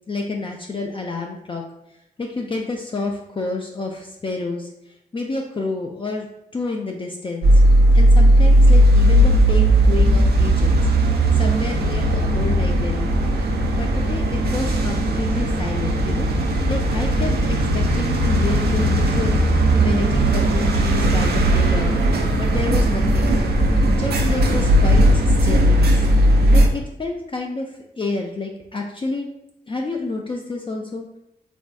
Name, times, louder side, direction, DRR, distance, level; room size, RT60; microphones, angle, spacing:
voice 1, 0.1-1.6 2.2-4.7 5.1-7.6 7.9-10.8 11.1-13.2 13.8-16.3 16.7-19.4 19.8-22.0 22.3-23.3 23.9-26.0 26.5-29.3 29.7-31.1, left 3 dB, 30° left, 0 dB, 0.4 m, -29 dB
sound 1, 7.4-26.7, right 1 dB, 75° right, 0.4 m, -17 dB
3.2 x 2.6 x 2.2 m, 0.83 s
cardioid pair, 45°, 17 cm